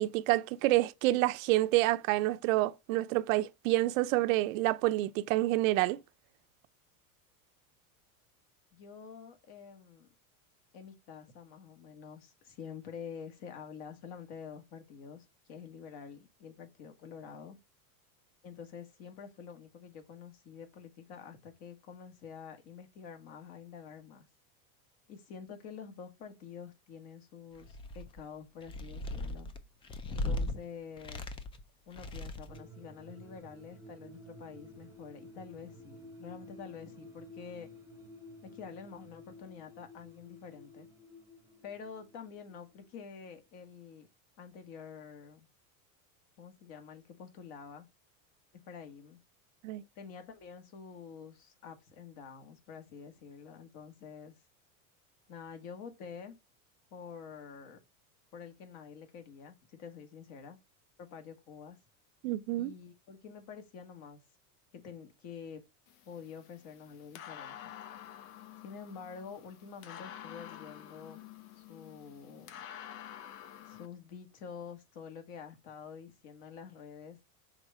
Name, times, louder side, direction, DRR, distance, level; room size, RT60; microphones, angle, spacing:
voice 1, 0.0-6.0 49.6-49.8 62.2-62.7, right 17 dB, 70° right, 0.6 m, -28 dB
voice 2, 8.7-10.1 10.7-17.6 18.4-24.2 25.1-29.5 30.1-31.3 31.9-37.7 38.4-40.9 41.6-44.1 44.4-45.5 46.4-47.9 48.5-49.2 50.0-54.3 55.3-56.4 56.9-57.8 58.3-60.6 61.0-61.8 62.6-64.2 64.7-65.6 66.1-67.7 68.6-71.2 71.6-72.6 73.6-77.2, left 6 dB, 55° left, 1.9 m, -48 dB
sound 1, 27.6-28.2 28.6-30.5 31.0-31.6 31.9-32.6, left 2 dB, 15° left, 0.3 m, -37 dB
sound 2, 32.5-43.3 43.5-43.6, left 1 dB, 5° right, 0.9 m, -53 dB
sound 3, 65.9-73.9, left 10 dB, 75° left, 1.0 m, -49 dB
6.1 x 3.8 x 4.2 m
supercardioid pair, 130°, 42 cm